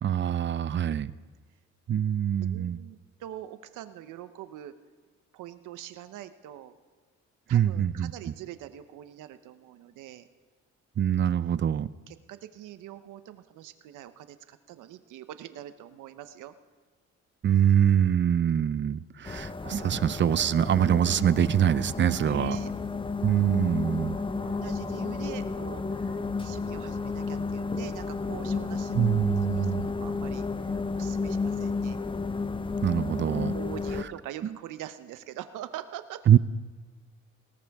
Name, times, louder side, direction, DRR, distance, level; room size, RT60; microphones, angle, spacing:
voice 1, 0.0-1.1 1.9-2.8 7.5-8.1 11.0-11.9 17.4-22.6 23.2-24.2 28.9-29.9 32.8-33.5 36.3-36.4, right 9 dB, 40° right, 17 dB, 0.5 m, -24 dB
voice 2, 2.4-4.7 5.3-6.7 7.5-10.3 12.1-16.5 22.2-22.7 24.2-30.5 30.9-32.0 33.5-36.2, right 12 dB, 90° right, 11 dB, 0.8 m, -43 dB
sound 1, 19.3-34.0, left 4 dB, 15° left, 0.6 m, -32 dB
19.5 x 18.0 x 3.5 m, 1.4 s
cardioid pair, 90°, 30 cm